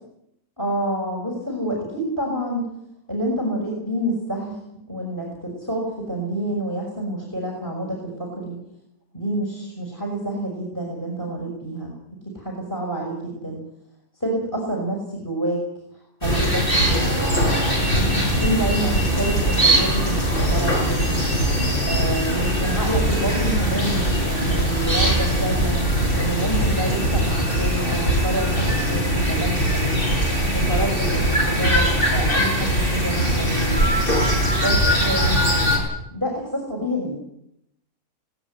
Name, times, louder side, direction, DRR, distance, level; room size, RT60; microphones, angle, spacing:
voice 1, 0.6-2.6 3.1-4.6 4.9-8.6 9.1-11.9 12.3-13.6 14.2-15.6 16.2-17.2 17.9-21.1 21.9-25.8 26.2-30.0 30.5-33.8 34.6-35.4 36.1-37.2, right 1 dB, 10° left, 0 dB, 6.2 m, -28 dB
sound 1, 16.2-35.8, equal, 35° left, 7.4 m, -21 dB
18.5 x 18.5 x 9.8 m, 0.79 s
omnidirectional pair, 1.6 m